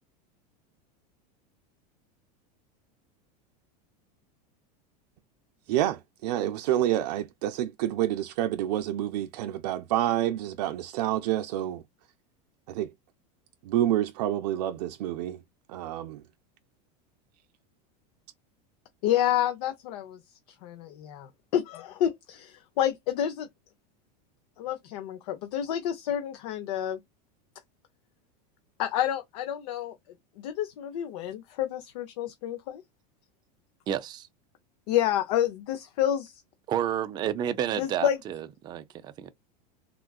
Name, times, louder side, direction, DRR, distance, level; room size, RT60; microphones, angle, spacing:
voice 1, 5.7-11.8 12.7-12.9 13.6-15.4 15.7-16.2, right 12 dB, 80° right, 0.4 m, -28 dB
voice 2, 19.0-20.2 20.6-23.5 24.6-27.0 28.8-30.0 30.4-32.8 34.9-36.4 37.8-38.2, left 11 dB, 70° left, 0.7 m, -29 dB
voice 3, 33.9-34.3 36.7-39.3, right 10 dB, 20° right, 0.4 m, -30 dB
3.6 x 2.3 x 2.2 m
supercardioid pair, 155°, 21 cm